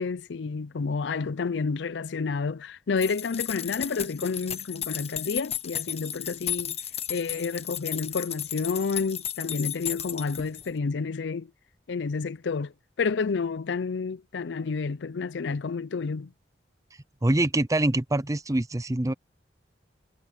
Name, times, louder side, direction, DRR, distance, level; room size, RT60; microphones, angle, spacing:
voice 1, 0.0-6.8 7.1-11.5 11.9-12.7 13.0-16.3, left 4 dB, 70° left, 0.5 m, -30 dB
sound 1, 3.0-10.7, left 10 dB, 35° left, 1.0 m, -34 dB
voice 2, 17.2-19.1, right 1 dB, 20° right, 0.6 m, -24 dB
head